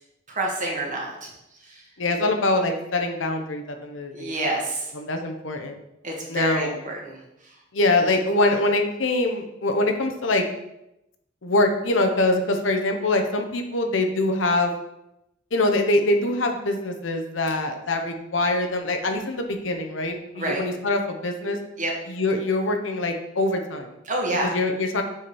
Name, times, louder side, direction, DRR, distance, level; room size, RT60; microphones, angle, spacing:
voice 1, 0.3-1.3 1.6-1.8 4.1-4.9 6.0-7.2 7.4-7.5 17.7-17.8 20.4-20.6 21.8-21.9 24.1-24.5, right 1 dB, 40° right, -1 dB, 1.8 m, -28 dB
voice 2, 2.0-4.3 4.9-5.8 6.3-6.8 7.7-10.5 11.4-14.7 15.5-21.6 22.1-23.9 24.4-25.0, left 2 dB, 75° left, 4 dB, 1.0 m, -24 dB
7.1 x 5.2 x 4.3 m, 0.87 s
head